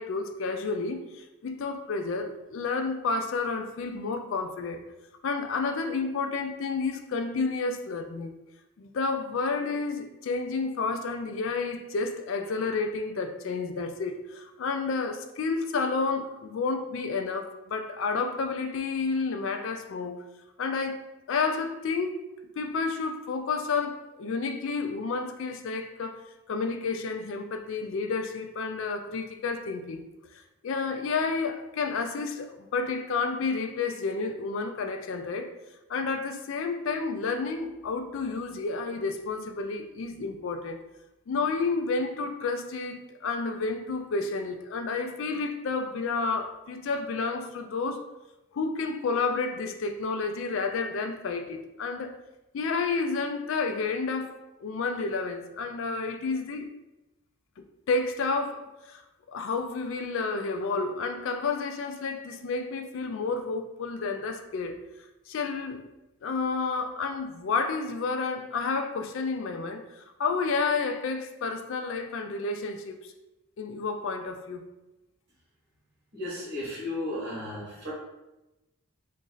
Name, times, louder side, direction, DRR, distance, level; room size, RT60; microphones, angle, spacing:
voice 1, 0.0-4.8 5.2-8.3 8.8-20.2 20.6-21.0 21.3-22.2 22.6-26.2 26.5-30.0 30.3-35.5 35.9-40.8 41.3-48.0 48.5-52.1 52.5-56.7 57.6-59.0 59.3-64.8 65.3-65.8 66.2-73.0 73.6-74.7, left 4 dB, 65° left, 6 dB, 0.3 m, -30 dB
voice 2, 76.1-77.9, left 1 dB, 50° right, -5 dB, 1.4 m, -34 dB
3.0 x 2.5 x 3.8 m, 0.98 s
head